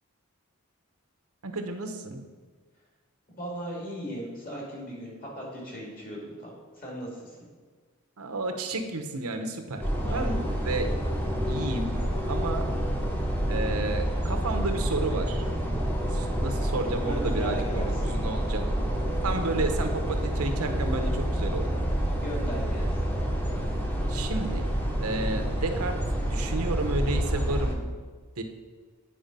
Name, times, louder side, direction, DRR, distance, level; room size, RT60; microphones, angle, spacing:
voice 1, 1.4-2.2 8.2-9.8 10.1-10.9 11.5-11.9 12.3-12.7 13.5-15.4 16.0-18.6 19.2-21.7 24.1-24.7 25.0-26.0 26.3-27.8 28.4-28.5, right 2 dB, 90° right, 5 dB, 0.9 m, -31 dB
voice 2, 3.4-7.4 10.1-10.4 17.0-17.9 22.1-23.0, equal, 40° left, -2 dB, 2.3 m, -37 dB
sound 1, 9.8-27.7, equal, 10° left, 0.8 m, -28 dB
8.8 x 4.9 x 5.3 m, 1.5 s
head